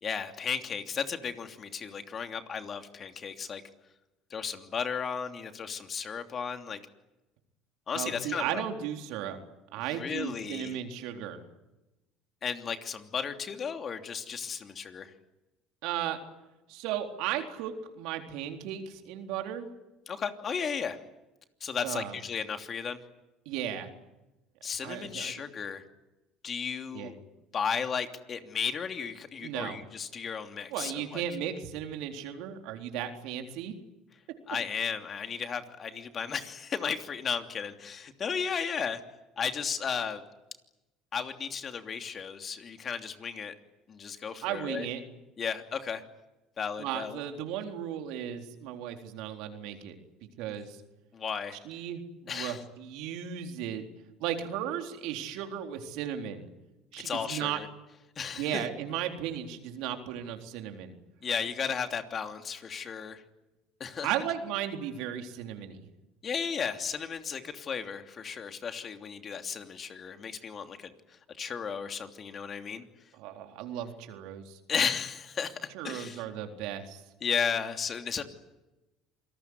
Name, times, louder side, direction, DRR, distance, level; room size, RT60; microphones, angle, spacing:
voice 1, 0.0-3.6 4.3-6.8 7.9-8.6 9.9-10.8 12.4-15.1 20.1-21.0 21.6-23.0 24.6-25.8 26.4-27.1 27.5-31.2 34.5-39.0 39.4-40.2 41.1-43.5 43.9-44.9 45.4-46.0 46.6-47.2 51.1-51.6 52.3-52.6 57.0-57.7 58.2-58.6 61.2-63.2 63.8-64.1 66.2-72.8 74.7-76.2 77.2-78.2, left 6 dB, 40° left, 7 dB, 3.0 m, -34 dB
voice 2, 7.9-9.4 9.7-11.4 15.8-16.2 16.7-19.7 21.8-22.1 23.5-23.9 24.8-25.3 26.9-27.1 29.4-29.8 30.7-33.7 44.4-45.0 46.8-50.0 50.4-50.8 51.6-53.9 54.2-56.5 56.9-57.6 58.4-60.9 64.0-65.8 73.2-74.6 75.7-77.0, right 10 dB, 75° right, 5 dB, 3.9 m, -35 dB
27.5 x 19.5 x 9.7 m, 1.0 s
supercardioid pair, 90°, 0 cm